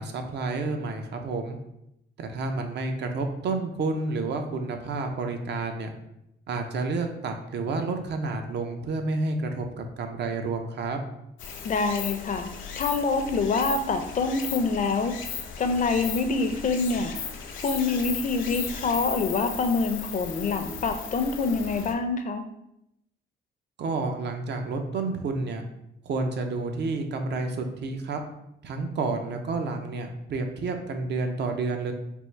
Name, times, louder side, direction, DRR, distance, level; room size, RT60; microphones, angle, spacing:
voice 1, 0.0-1.6 2.2-5.9 6.5-11.0 23.8-25.7 26.0-28.2 28.6-31.9, right 3 dB, 60° right, 5 dB, 0.6 m, -30 dB
Stream, 11.4-21.9, left 6 dB, 90° left, 0.6 m, -36 dB
voice 2, 11.6-12.5 12.8-15.1 15.6-17.1 17.6-22.4, left 4 dB, 40° left, 7 dB, 0.5 m, -26 dB
3.6 x 2.5 x 4.3 m, 0.82 s
cardioid pair, 90°, 20 cm